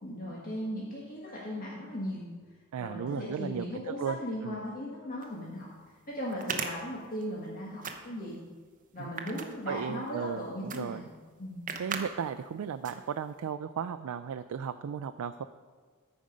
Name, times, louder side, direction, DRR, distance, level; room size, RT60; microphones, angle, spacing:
voice 1, 0.0-2.3 2.8-5.7 6.1-8.4 8.9-11.1 11.4-11.7, equal, 40° left, -5 dB, 1.5 m, -37 dB
voice 2, 2.7-4.6 9.0-9.1 9.7-11.0 11.8-15.4, right 7 dB, 90° right, 10 dB, 0.3 m, -35 dB
sound 1, 5.2-5.3 6.3-7.5 7.8-8.4 9.0-10.1 10.7-10.8 11.1-11.2 11.7-12.1 12.4-12.5 12.8-13.4, right 6 dB, 40° right, 0.8 m, -37 dB
13.5 x 5.2 x 5.1 m, 1.5 s
head